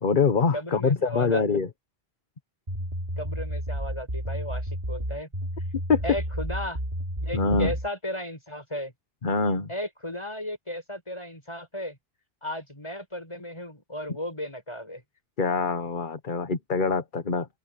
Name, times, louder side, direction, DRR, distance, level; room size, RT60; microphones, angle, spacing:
voice 1, 0.0-1.7 5.9-6.0 7.3-7.7 9.2-9.7 15.4-17.5, left 4 dB, 50° left, 1.4 m, -24 dB
voice 2, 0.5-1.4 3.2-5.3 6.0-6.8 7.2-8.9 9.7-12.0 12.4-15.0, left 1 dB, 25° left, 7.0 m, -35 dB
sound 1, 2.7-7.9, equal, 40° right, 4.1 m, -31 dB
open air
omnidirectional pair, 1.1 m